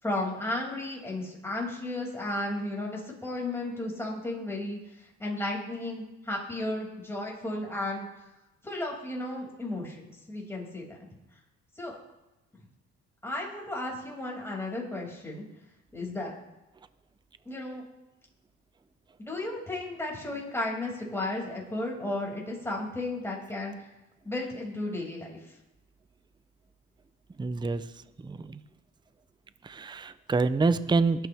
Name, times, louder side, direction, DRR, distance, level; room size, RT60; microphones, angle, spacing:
voice 1, 0.0-4.8 5.2-8.1 8.6-11.0 11.8-12.0 13.2-15.4 15.9-16.3 17.5-17.8 19.2-23.7 24.2-25.4, left 2 dB, 10° left, -3 dB, 5.9 m, -34 dB
voice 2, 27.4-27.8 28.2-28.6 29.6-31.3, right 3 dB, 15° right, 13 dB, 0.6 m, -27 dB
22.5 x 9.3 x 3.5 m, 0.98 s
cardioid pair, 90°, 30 cm